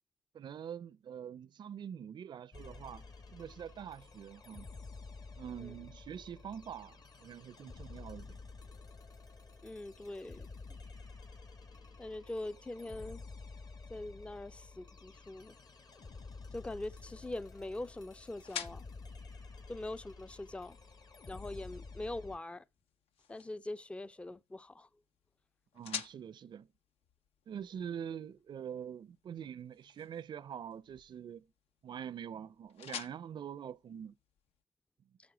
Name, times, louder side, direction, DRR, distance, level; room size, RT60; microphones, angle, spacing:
voice 1, 0.3-3.1 3.3-4.7 5.4-8.4 25.7-26.7 27.5-31.5 31.8-34.1, right 8 dB, 45° right, 0.4 m, -45 dB
sound 1, 2.5-22.4, left 4 dB, 40° left, 1.0 m, -51 dB
voice 2, 9.6-10.5 12.0-13.2 13.9-15.5 16.5-18.9 19.7-20.8 21.3-22.6 23.3-24.9, left 2 dB, 10° left, 0.4 m, -43 dB
sound 2, 15.8-34.6, left 8 dB, 70° left, 0.6 m, -51 dB
9.4 x 6.6 x 6.1 m
supercardioid pair, 60°, 10 cm